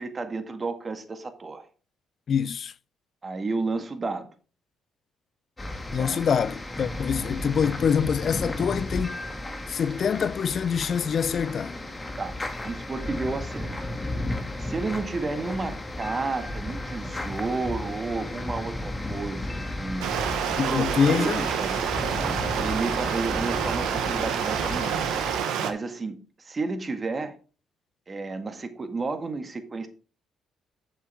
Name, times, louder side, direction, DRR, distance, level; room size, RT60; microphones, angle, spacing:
voice 1, 0.0-1.7 3.2-4.3 5.9-6.2 12.2-13.7 14.6-20.1 20.6-21.7 22.6-25.1 25.5-27.3 28.1-29.9, right 3 dB, 35° right, 1.7 m, -32 dB
voice 2, 2.3-2.7 5.9-9.2 9.7-11.8 20.6-21.4, left 7 dB, 55° left, 0.5 m, -25 dB
sound 1, 5.6-25.4, left 1 dB, 20° left, 2.0 m, -34 dB
Stream, 20.0-25.7, right 8 dB, 75° right, 1.1 m, -28 dB
8.5 x 7.0 x 3.5 m
hypercardioid pair, 50°, 0 cm